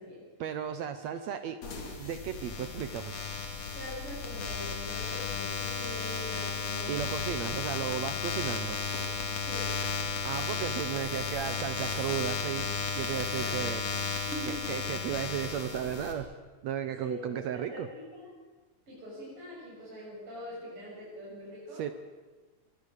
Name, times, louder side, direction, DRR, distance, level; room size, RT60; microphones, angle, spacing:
voice 1, 0.4-1.6 2.0-3.1 6.9-8.8 10.2-12.7 12.9-13.8 14.5-16.3 16.6-17.9 21.8-21.9, right 9 dB, 70° right, 10 dB, 2.1 m, -34 dB
sound 1, 1.6-16.1, left 5 dB, 60° left, 3.9 m, -34 dB
voice 2, 3.7-7.0 9.4-9.8 13.3-13.8 14.2-14.7 17.0-18.2 18.9-21.8, equal, 45° right, -6 dB, 8.0 m, -43 dB
24.0 x 22.5 x 6.7 m, 1.3 s
omnidirectional pair, 3.5 m